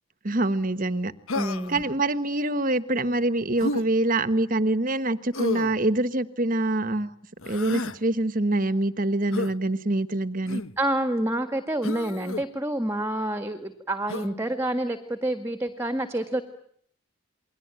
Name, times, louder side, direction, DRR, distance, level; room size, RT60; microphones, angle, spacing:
voice 1, 0.2-1.1 1.7-7.1 7.4-10.6, right 2 dB, 40° right, 1.3 m, -25 dB
Human voice, 1.3-1.8 3.6-3.9 5.3-5.8 7.4-8.0 9.3-9.5 10.5-10.8 11.8-12.4 14.1-14.3, left 2 dB, 70° left, 1.2 m, -31 dB
voice 2, 1.4-1.8 10.8-16.4, right 1 dB, 10° right, 1.8 m, -28 dB
29.0 x 22.5 x 9.0 m
head